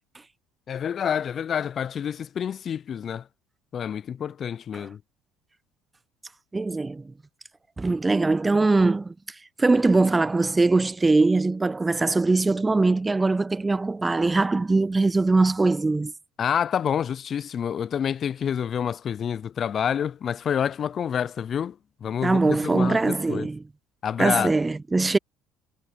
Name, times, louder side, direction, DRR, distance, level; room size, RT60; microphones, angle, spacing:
voice 1, 0.7-3.2 3.7-5.0 16.4-21.8 22.0-23.5 24.0-24.5, left 8 dB, 45° left, 0.5 m, -28 dB
voice 2, 6.5-7.1 7.8-9.1 9.6-16.1 22.2-23.6 24.2-25.2, right 3 dB, 20° right, 0.6 m, -22 dB
hypercardioid pair, 70°, 0 cm